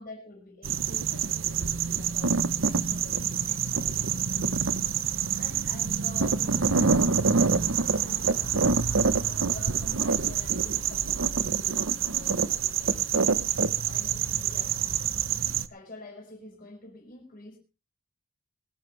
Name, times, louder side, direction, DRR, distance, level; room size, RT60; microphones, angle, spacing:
voice 1, 0.0-4.8 5.3-7.2 7.7-8.6 9.2-13.4 13.8-15.0 15.7-17.6, left 2 dB, 45° left, 5.3 m, -47 dB
sound 1, 0.6-15.7, right 6 dB, 70° right, 0.8 m, -26 dB
22.0 x 12.0 x 3.3 m
head